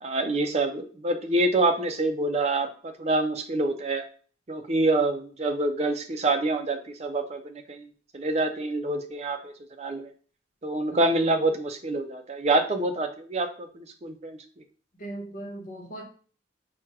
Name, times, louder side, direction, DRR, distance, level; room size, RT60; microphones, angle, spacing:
voice 1, 0.0-4.0 4.5-7.9 8.1-10.1 10.6-14.4, right 2 dB, 35° right, 6 dB, 0.5 m, -26 dB
voice 2, 15.0-16.0, right 1 dB, 45° left, 1 dB, 1.0 m, -38 dB
4.4 x 2.3 x 4.7 m, 0.42 s
head